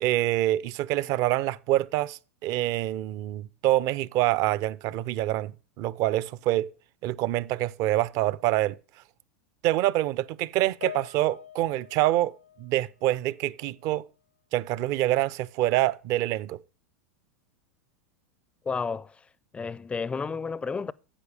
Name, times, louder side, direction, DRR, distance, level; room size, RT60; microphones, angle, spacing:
voice 1, 0.0-6.7 7.0-8.8 9.6-12.3 12.6-14.0 14.5-16.6, right 15 dB, 45° right, 0.5 m, -26 dB
Piano, 10.8-13.5 13.7-14.0 14.8-14.9, left 9 dB, 85° left, 0.7 m, -45 dB
voice 2, 18.6-19.3 19.5-20.9, left 5 dB, 15° left, 0.4 m, -31 dB
10.0 x 8.1 x 4.9 m
hypercardioid pair, 90°, 7 cm